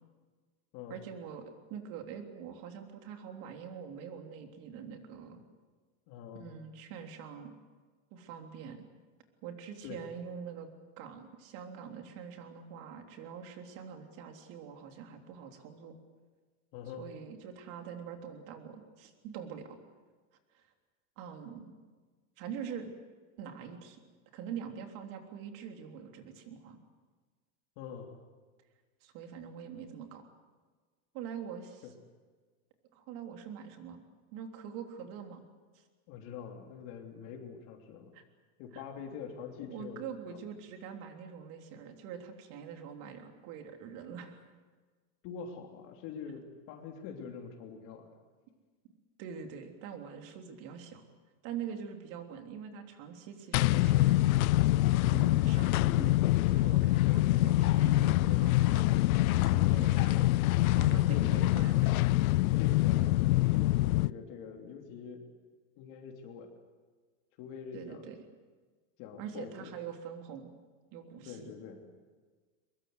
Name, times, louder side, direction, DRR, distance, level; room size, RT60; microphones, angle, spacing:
voice 1, 0.9-5.4 6.3-7.5 8.1-8.9 9.4-10.7 11.0-15.9 17.0-19.8 20.5-20.6 21.2-21.7 22.4-22.9 23.4-24.0 24.3-26.8 29.0-30.2 31.1-31.8 32.9-34.0 34.3-35.4 35.7-35.8 38.1-38.2 38.7-38.8 39.7-44.5 49.2-51.1 51.4-54.2 54.9-56.2 56.5-58.8 59.1-62.1 67.7-68.2 69.2-70.5 70.9-71.5, right 7 dB, 50° right, 4 dB, 3.5 m, -44 dB
voice 2, 6.1-6.6 9.8-10.0 16.7-17.0 27.8-28.1 31.8-31.9 36.1-38.1 38.6-40.0 40.3-40.4 45.2-48.1 57.0-57.3 61.1-61.5 62.5-63.2 63.5-65.2 65.8-66.5 67.4-68.1 69.0-69.7 71.2-71.9, left 7 dB, 50° left, 3 dB, 3.2 m, -44 dB
sound 1, 53.5-64.1, left 17 dB, 80° left, 0.6 m, -25 dB
23.0 x 22.0 x 8.0 m, 1.4 s
supercardioid pair, 145°, 41 cm